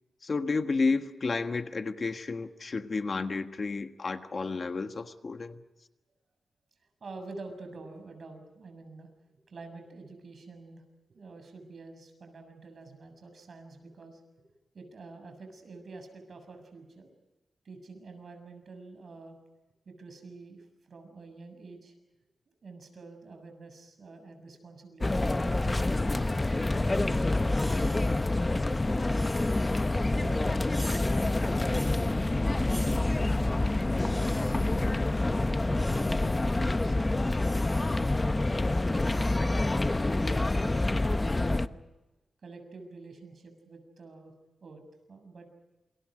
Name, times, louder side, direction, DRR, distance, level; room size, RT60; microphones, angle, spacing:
voice 1, 0.2-5.6, left 4 dB, 45° left, 7 dB, 1.5 m, -31 dB
voice 2, 7.0-10.8 11.1-14.2 14.7-17.1 17.6-19.4 19.9-21.9 22.6-26.0 26.5-29.5 30.1-34.8 35.4-38.3 38.9-40.3 40.6-41.8 42.4-44.3 44.6-44.8 45.1-45.5, right 3 dB, 55° right, 6 dB, 7.0 m, -48 dB
sound 1, 25.0-41.7, left 2 dB, 20° left, 0.8 m, -27 dB
sound 2, 26.8-39.4, right 1 dB, 5° right, 4.9 m, -49 dB
28.0 x 27.5 x 5.1 m, 1.1 s
wide cardioid pair, 100°, 0 cm